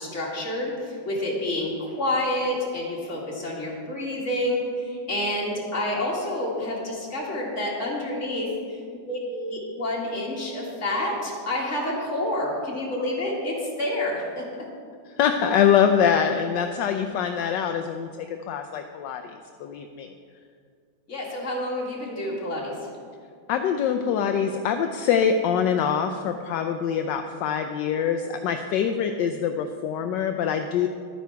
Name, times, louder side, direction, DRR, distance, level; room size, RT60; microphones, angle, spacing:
voice 1, 0.0-8.8 9.1-14.5 21.1-22.9, left 1 dB, 40° left, -3 dB, 2.4 m, -28 dB
voice 2, 15.1-19.3 19.6-20.1 23.5-30.9, left 8 dB, 75° left, 6 dB, 1.2 m, -24 dB
12.0 x 9.3 x 4.6 m, 2.2 s
omnidirectional pair, 2.0 m